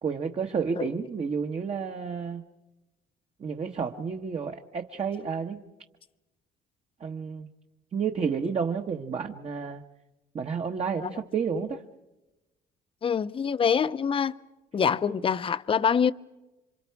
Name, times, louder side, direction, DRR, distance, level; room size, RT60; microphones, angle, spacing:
voice 1, 0.0-2.4 3.4-5.7 7.0-7.5 7.9-9.8 10.3-11.8, right 6 dB, 35° right, 1.3 m, -31 dB
voice 2, 13.0-14.4 14.7-16.1, left 7 dB, 30° left, 0.7 m, -25 dB
29.0 x 25.5 x 4.7 m
cardioid pair, 110°, 17 cm